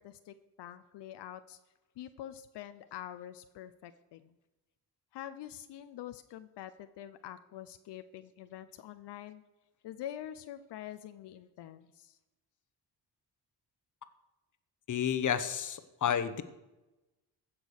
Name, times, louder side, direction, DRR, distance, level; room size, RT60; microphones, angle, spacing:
voice 1, 0.0-1.6 2.0-4.3 5.1-9.4 9.8-12.2, left 11 dB, 80° left, 10 dB, 0.7 m, -46 dB
voice 2, 14.9-16.4, left 8 dB, 45° left, 11 dB, 1.0 m, -31 dB
15.5 x 6.2 x 6.5 m, 1.0 s
cardioid pair, 105°, 41 cm